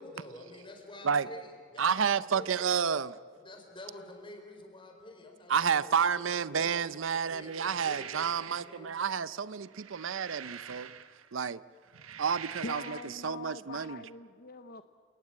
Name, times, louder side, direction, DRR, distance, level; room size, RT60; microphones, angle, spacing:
voice 1, 0.0-2.6 3.4-6.8 7.1-9.0, left 2 dB, 25° left, 4.4 m, -49 dB
voice 2, 1.8-3.1 5.5-10.9 11.3-11.6 12.2-13.0 13.2-14.0, right 6 dB, 65° right, 0.6 m, -30 dB
sound 1, 7.3-8.8 9.6-11.3 11.8-13.2, right 8 dB, 85° right, 1.2 m, -45 dB
voice 3, 12.6-14.8, left 3 dB, 45° left, 0.7 m, -43 dB
28.5 x 19.0 x 8.9 m
head